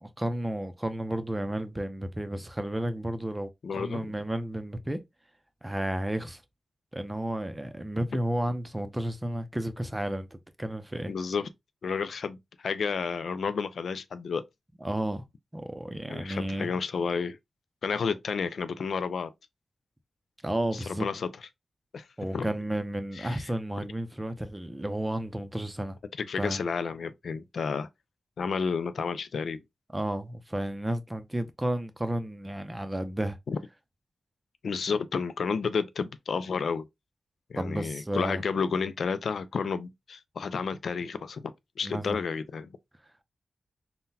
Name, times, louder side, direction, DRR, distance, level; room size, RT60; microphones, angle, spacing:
voice 1, 0.0-5.0 5.6-6.4 6.9-11.1 14.8-15.2 15.5-16.7 20.4-21.1 22.2-26.0 26.4-26.6 29.9-33.4 37.6-38.4 41.8-42.2, right 1 dB, 15° right, 0.6 m, -32 dB
voice 2, 3.6-4.0 11.1-11.5 11.8-14.4 16.1-17.4 17.8-19.3 21.0-21.3 21.9-22.1 22.3-22.5 23.2-23.4 26.3-27.9 28.4-29.6 33.5-33.6 34.6-36.9 37.5-41.4 41.8-42.7, left 5 dB, 80° left, 0.3 m, -31 dB
3.7 x 2.1 x 2.7 m
cardioid pair, 60°, 0 cm